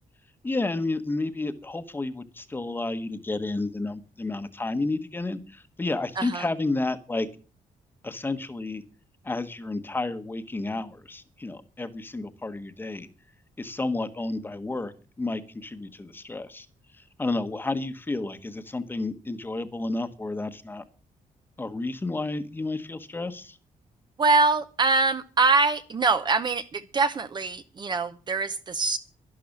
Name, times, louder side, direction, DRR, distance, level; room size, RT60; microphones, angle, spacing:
voice 1, 0.4-7.3 8.0-8.8 9.2-13.1 13.6-14.9 15.2-16.7 16.9-20.8 21.6-23.6, left 2 dB, 15° left, 11 dB, 1.1 m, -31 dB
voice 2, 24.2-29.0, right 3 dB, 30° right, 11 dB, 0.7 m, -24 dB
12.0 x 11.5 x 7.1 m, 0.38 s
wide cardioid pair, 175°, 14 cm